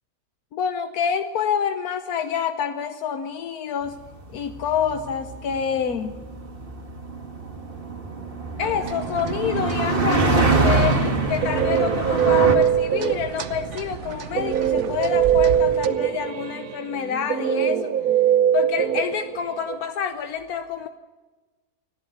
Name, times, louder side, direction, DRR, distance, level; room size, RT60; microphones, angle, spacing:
voice 1, 0.5-4.0 4.3-6.2 8.6-18.0 18.5-20.9, left 7 dB, 85° left, 8 dB, 1.3 m, -27 dB
sound 1, 4.1-12.5, right 3 dB, 40° right, 2.1 m, -24 dB
sound 2, 8.6-15.9, right 7 dB, 55° right, 1.1 m, -35 dB
Guitar, 11.1-13.6 14.3-19.8, right 9 dB, 80° right, 1.3 m, -22 dB
29.5 x 11.5 x 7.9 m, 1.3 s
omnidirectional pair, 1.5 m